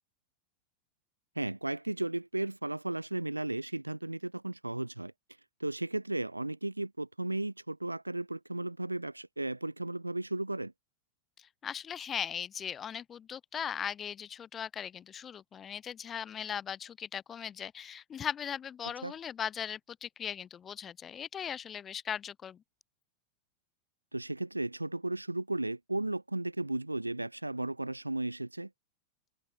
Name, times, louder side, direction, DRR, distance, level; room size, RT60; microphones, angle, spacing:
voice 1, 1.3-5.1 5.6-10.7 18.8-19.1 24.1-28.7, right 2 dB, 85° right, 1.3 m, -35 dB
voice 2, 11.4-22.6, left 8 dB, 25° left, 1.3 m, -39 dB
figure-of-eight pair, 90°, 0 cm